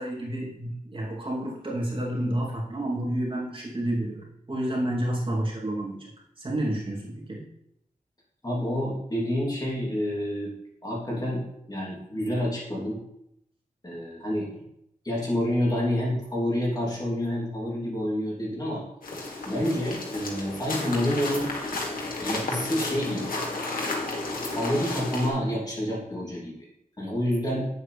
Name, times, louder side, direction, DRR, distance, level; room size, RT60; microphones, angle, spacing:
voice 1, 0.0-6.1 6.4-7.4, right 1 dB, 35° right, -5 dB, 2.8 m, -30 dB
voice 2, 8.4-10.5 10.8-13.0 13.8-14.5 15.0-18.8 19.5-21.5 22.2-23.3 24.5-26.5 27.0-27.6, left 1 dB, 25° left, -4 dB, 2.9 m, -28 dB
sound 1, 19.0-25.3, left 2 dB, 85° left, 1.9 m, -32 dB
9.2 x 7.9 x 3.3 m, 0.77 s
wide cardioid pair, 105°, 14 cm